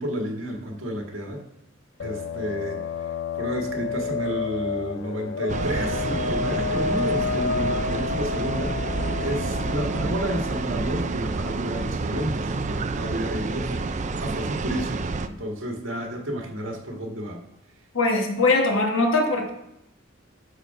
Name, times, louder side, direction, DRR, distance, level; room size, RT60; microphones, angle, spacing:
voice 1, 0.0-1.4 2.0-2.8 3.4-13.9 14.2-17.4, equal, 70° right, 1 dB, 1.9 m, -31 dB
sound 1, 2.0-11.2, left 5 dB, 60° left, 0.5 m, -30 dB
sound 2, 5.5-15.3, right 3 dB, 35° right, 0.5 m, -29 dB
voice 2, 17.9-19.5, left 2 dB, 85° left, 2 dB, 1.7 m, -21 dB
11.5 x 4.2 x 5.7 m, 0.84 s
head